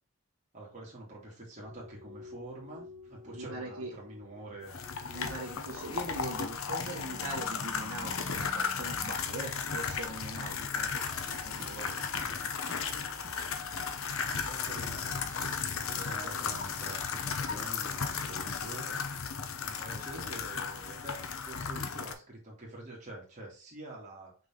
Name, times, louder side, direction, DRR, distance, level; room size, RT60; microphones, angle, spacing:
voice 1, 0.5-4.8 10.8-12.4 14.3-15.6 15.9-19.1 19.6-24.4, right 1 dB, 35° right, 2.8 m, -47 dB
sound 1, 1.6-9.1, left 1 dB, ahead, 1.7 m, -51 dB
voice 2, 3.3-3.9 5.1-12.0 16.0-16.4 19.6-20.0, right 2 dB, 80° right, 1.5 m, -42 dB
sound 2, 4.7-22.1, left 6 dB, 70° left, 0.8 m, -35 dB
sound 3, 11.3-16.7, right 2 dB, 60° right, 1.1 m, -53 dB
6.0 x 4.1 x 3.8 m
head